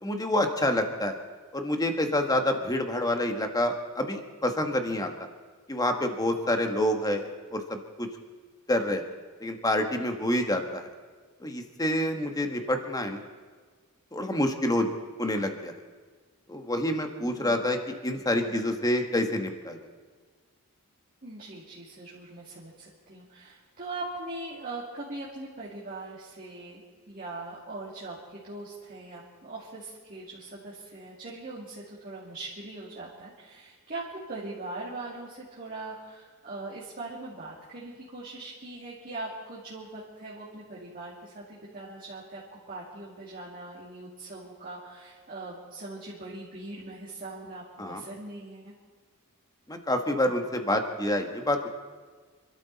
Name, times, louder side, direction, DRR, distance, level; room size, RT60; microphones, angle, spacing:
voice 1, 0.0-1.2 1.5-5.1 5.7-8.1 8.7-9.0 9.4-10.9 11.4-13.2 14.1-14.9 15.2-15.7 16.5-19.8 47.8-48.0 49.7-51.7, left 1 dB, 15° left, 5 dB, 1.5 m, -27 dB
voice 2, 17.2-17.7 18.4-18.6 21.2-48.7, right 2 dB, 40° right, -6 dB, 2.6 m, -41 dB
27.0 x 13.0 x 4.2 m, 1.5 s
head